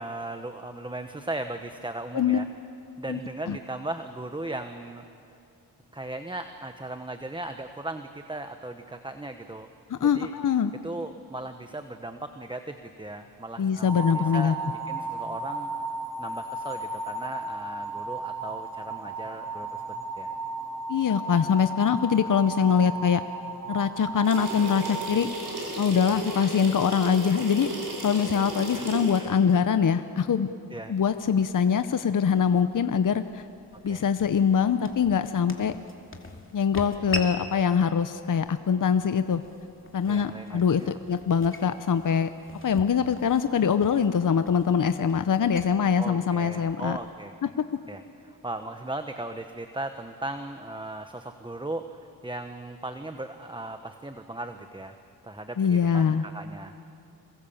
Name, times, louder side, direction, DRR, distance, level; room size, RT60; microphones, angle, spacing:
voice 1, 0.0-2.5 3.0-5.0 5.9-9.7 10.0-10.3 10.8-14.6 14.9-15.9 16.2-19.8 20.2-20.3 26.1-26.2 28.7-28.9 29.2-29.3 30.7-30.9 33.9-34.0 40.1-40.9 46.0-47.3 47.9-54.9 55.2-56.7, right 2 dB, 15° right, 7 dB, 1.1 m, -37 dB
voice 2, 9.9-10.7 13.6-14.5 20.9-23.2 23.7-25.3 25.8-27.7 28.0-30.5 30.9-33.4 33.8-35.7 36.5-39.4 39.9-42.3 42.6-47.0 55.6-56.2, left 7 dB, 55° left, 10 dB, 0.9 m, -23 dB
sound 1, 13.8-26.0, right 3 dB, 10° left, 7.6 m, -35 dB
sound 2, 24.2-29.2, right 2 dB, 85° right, 6.4 m, -35 dB
sound 3, 31.1-47.1, left 1 dB, 35° left, 2.6 m, -43 dB
27.5 x 22.5 x 7.3 m, 2.7 s
cardioid pair, 65°, 38 cm